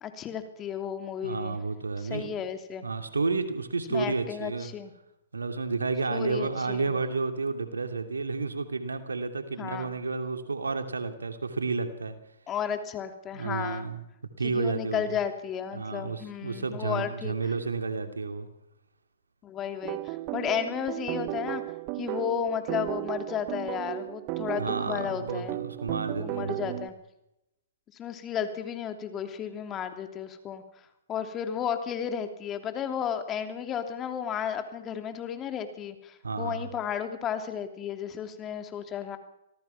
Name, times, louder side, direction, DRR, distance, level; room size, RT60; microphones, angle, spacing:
voice 1, 0.0-1.6 2.0-2.8 3.9-4.9 6.1-6.9 9.6-9.9 12.5-13.9 14.4-17.3 19.4-21.6 22.0-25.6 26.1-26.9 27.9-30.6 31.1-39.2, left 8 dB, 25° left, 7 dB, 3.0 m, -33 dB
voice 2, 1.2-2.4 2.8-4.7 5.3-12.2 13.3-14.0 14.4-15.0 15.7-18.5 24.6-26.8 36.2-36.7, right 4 dB, 90° right, 7 dB, 2.9 m, -31 dB
sound 1, 19.8-26.9, right 19 dB, 35° right, 1.1 m, -35 dB
26.0 x 18.0 x 5.9 m, 0.86 s
hypercardioid pair, 125°, 0 cm